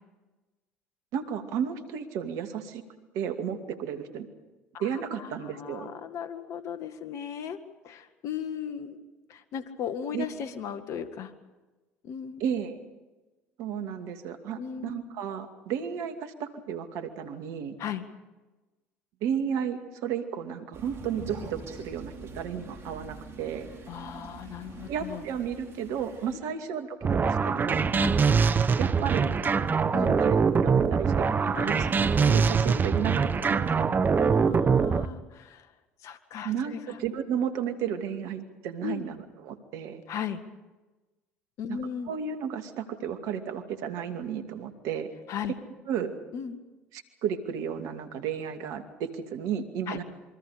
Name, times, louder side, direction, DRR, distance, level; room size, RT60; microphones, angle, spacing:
voice 1, 1.1-2.8 3.1-4.3 4.8-5.9 10.1-10.2 12.4-12.8 13.6-17.7 19.2-23.7 24.9-27.9 28.8-29.3 30.0-31.7 32.2-33.9 36.4-36.7 37.0-40.0 41.7-41.8 42.1-45.1 45.9-46.1 46.9-50.0, right 8 dB, 65° right, 7 dB, 2.5 m, -33 dB
voice 2, 4.7-7.6 7.8-11.3 12.0-12.4 14.6-15.0 17.8-18.0 23.9-25.2 28.0-28.2 29.9-30.2 31.6-31.9 34.2-35.7 36.0-37.0 38.8-39.1 40.1-40.4 41.6-42.1 45.3-45.5 46.3-46.6 49.9-50.0, left 8 dB, 60° left, 10 dB, 1.8 m, -37 dB
Crow, 20.7-26.4, right 3 dB, 50° right, 5.7 m, -44 dB
sound 1, 27.0-35.1, right 5 dB, 30° right, 1.2 m, -23 dB
28.0 x 23.5 x 5.1 m, 1.1 s
hypercardioid pair, 65°, 6 cm